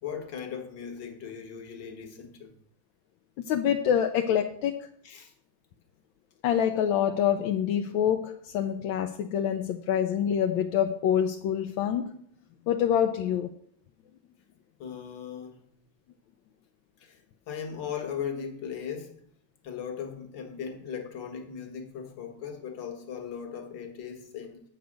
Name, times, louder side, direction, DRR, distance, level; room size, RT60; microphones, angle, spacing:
voice 1, 0.0-2.5 5.0-5.3 14.8-15.6 17.0-19.2 19.6-24.6, left 7 dB, 65° left, 1.9 m, -38 dB
voice 2, 3.4-4.9 6.4-12.2 12.7-13.5, left 9 dB, 80° left, 1.3 m, -26 dB
8.0 x 5.9 x 6.3 m
omnidirectional pair, 2.2 m